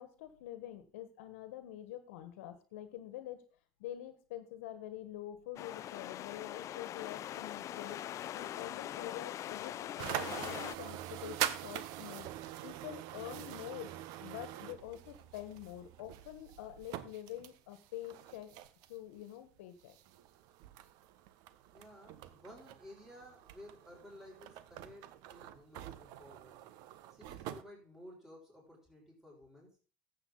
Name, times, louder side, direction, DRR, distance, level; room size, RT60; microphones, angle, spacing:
voice 1, 0.0-3.4 3.8-8.0 8.3-12.3 12.6-13.9 14.2-18.5 18.9-19.9, left 12 dB, 80° left, 10 dB, 1.4 m, -46 dB
sound 1, 5.6-10.8, left 12 dB, 45° left, 0.4 m, -42 dB
sound 2, 10.0-19.2 19.9-27.6, right 12 dB, 65° right, 0.9 m, -44 dB
voice 2, 21.7-26.6 27.1-29.8, left 1 dB, 5° right, -3 dB, 6.0 m, -55 dB
13.5 x 7.9 x 3.9 m, 0.36 s
hypercardioid pair, 85°, 7 cm